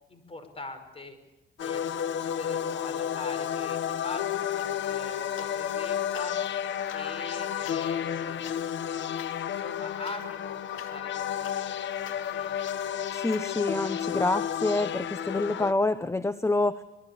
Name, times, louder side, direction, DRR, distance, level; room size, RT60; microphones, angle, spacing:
voice 1, 0.1-1.2 1.6-6.3 6.9-12.9, left 3 dB, 30° left, 9 dB, 5.7 m, -43 dB
sound 1, 1.6-15.7, left 9 dB, 70° left, 1.2 m, -31 dB
sound 2, 4.6-5.7 6.0-13.5, left 10 dB, 85° left, 2.3 m, -50 dB
voice 2, 13.1-16.8, left 2 dB, 15° left, 13 dB, 0.9 m, -27 dB
27.0 x 21.5 x 8.5 m, 0.96 s
cardioid pair, 90°, 20 cm